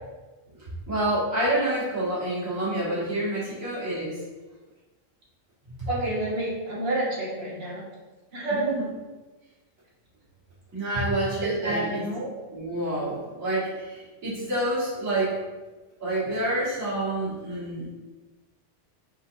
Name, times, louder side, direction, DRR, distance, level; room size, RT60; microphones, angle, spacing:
voice 1, 0.9-4.2 5.7-5.9 8.5-8.9 10.7-12.1 12.5-15.4 16.0-17.9, right 1 dB, 90° right, -10 dB, 2.0 m, -28 dB
voice 2, 5.9-7.8 8.3-8.6 11.4-12.3, right 1 dB, 55° right, -5 dB, 1.1 m, -29 dB
4.3 x 2.7 x 2.6 m, 1.2 s
omnidirectional pair, 1.4 m